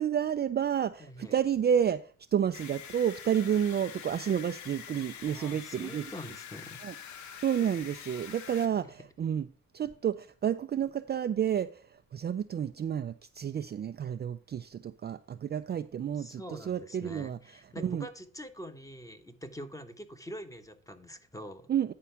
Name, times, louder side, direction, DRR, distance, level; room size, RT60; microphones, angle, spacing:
voice 1, 0.0-2.0 2.3-6.0 6.8-6.9 7.4-9.5 9.7-11.8 12.1-17.4 17.8-18.1 21.7-21.9, right 9 dB, 35° right, 0.4 m, -30 dB
voice 2, 1.0-1.3 5.3-6.8 16.2-21.7, equal, 10° left, 1.1 m, -45 dB
sound 1, 2.5-8.7, left 8 dB, 70° left, 0.9 m, -45 dB
10.0 x 4.6 x 5.7 m
cardioid pair, 90°, 30 cm